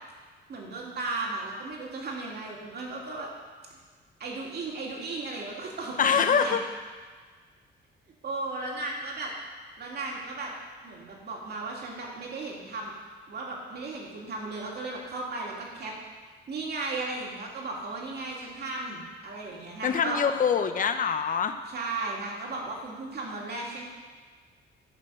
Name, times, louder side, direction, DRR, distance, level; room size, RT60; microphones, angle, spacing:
voice 1, 0.5-3.3 4.2-6.6 8.2-9.3 9.8-10.5 10.8-12.9 13.3-15.9 16.5-20.2 21.7-23.8, right 3 dB, 55° right, -2 dB, 2.4 m, -35 dB
voice 2, 6.0-6.6 19.8-21.5, left 6 dB, 45° left, 8 dB, 0.7 m, -24 dB
12.0 x 4.5 x 6.3 m, 1.5 s
cardioid pair, 90°, 20 cm